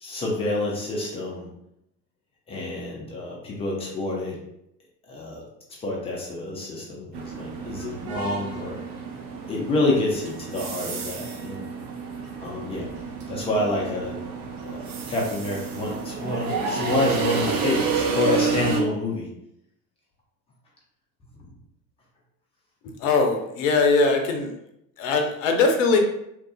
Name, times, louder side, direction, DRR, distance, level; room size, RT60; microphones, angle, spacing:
voice 1, 0.0-1.5 2.5-4.4 5.1-5.4 5.8-8.8 9.5-11.7 12.4-12.9 13.3-14.2 14.6-19.3 25.1-25.2, left 2 dB, 15° left, -3 dB, 0.3 m, -28 dB
sound 1, 7.1-18.8, right 5 dB, 45° right, 0.6 m, -30 dB
voice 2, 23.0-24.5 25.0-26.0, left 3 dB, 50° left, 4 dB, 0.6 m, -21 dB
2.9 x 2.4 x 2.3 m, 0.79 s
figure-of-eight pair, 70°, 49 cm